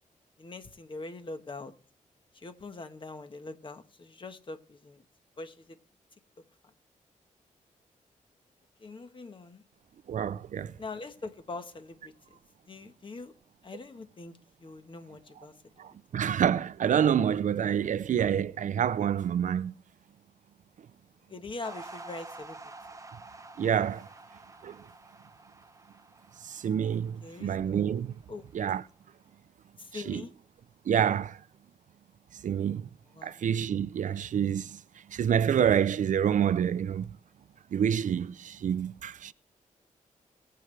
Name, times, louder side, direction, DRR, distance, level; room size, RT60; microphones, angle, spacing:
voice 1, 0.4-1.7 2.3-5.0 5.4-5.8 8.8-9.6 10.8-12.4 12.7-13.3 13.6-15.5 21.3-22.6 27.2-27.8 28.3-28.5 29.8-30.3 33.1-33.3, left 3 dB, 35° left, 1.3 m, -43 dB
voice 2, 10.1-10.7 15.8-19.7 23.6-24.1 24.6-24.8 26.4-28.1 28.5-28.8 29.9-30.2 30.9-31.4 32.4-32.9 33.2-34.8 35.1-37.1 37.7-39.3, right 8 dB, 65° right, 0.5 m, -27 dB
sound 1, 21.6-28.1, right 2 dB, 25° right, 1.1 m, -49 dB
22.5 x 7.9 x 3.3 m
wide cardioid pair, 110°, 14 cm